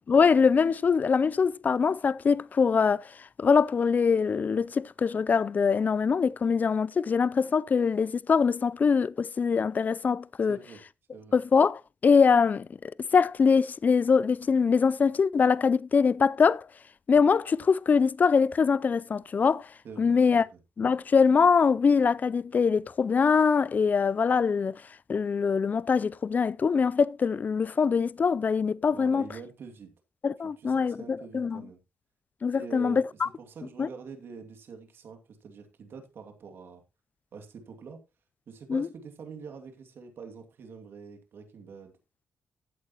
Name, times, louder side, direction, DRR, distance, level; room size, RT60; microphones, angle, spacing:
voice 1, 0.1-10.6 11.3-16.6 17.1-19.7 20.0-20.5 20.8-24.8 25.1-29.3 30.2-31.6 32.4-33.3 33.8-33.9 38.7-38.9, left 5 dB, 45° left, 0.5 m, -23 dB
voice 2, 10.5-10.8 11.1-11.4 19.8-20.6 28.9-29.9 30.4-31.8 32.5-36.8 37.3-38.0 38.5-41.9, right 5 dB, 65° right, 2.4 m, -45 dB
14.0 x 8.5 x 3.0 m
cardioid pair, 65°, 4 cm